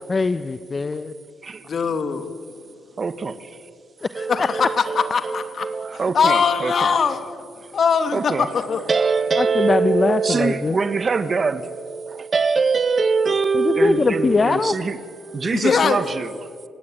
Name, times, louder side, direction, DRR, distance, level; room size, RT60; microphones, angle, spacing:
voice 1, 0.1-1.1 4.0-4.5 9.4-10.8 13.5-14.7, left 4 dB, 30° left, 0.9 m, -21 dB
voice 2, 1.6-2.3 4.3-4.6 4.9-5.7 6.1-7.2 7.7-8.8 10.3-10.4 15.4-16.0, left 6 dB, 50° left, 2.4 m, -21 dB
voice 3, 3.0-3.5 4.1-6.9 8.1-8.5 8.9-15.0 15.2-16.7, right 5 dB, 35° right, 1.5 m, -23 dB
29.0 x 17.5 x 9.0 m
cardioid pair, 90°, 0 cm